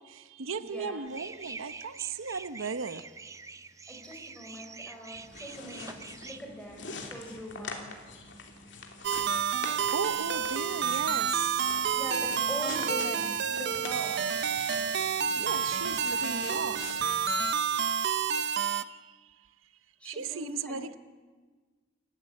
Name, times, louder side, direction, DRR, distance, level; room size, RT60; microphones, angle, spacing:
voice 1, 0.0-3.3 9.9-11.9 15.4-17.0 18.5-19.8 20.0-21.0, right 5 dB, 90° right, 0.9 m, -37 dB
voice 2, 0.5-1.0 3.9-7.9 11.9-14.4 20.0-20.8, equal, 5° left, 4.9 m, -42 dB
sound 1, 1.1-6.4, right 4 dB, 15° right, 0.6 m, -46 dB
sound 2, 5.1-17.5, left 4 dB, 60° left, 3.1 m, -45 dB
sound 3, 9.0-18.8, right 7 dB, 60° right, 0.7 m, -29 dB
29.0 x 14.0 x 8.7 m
head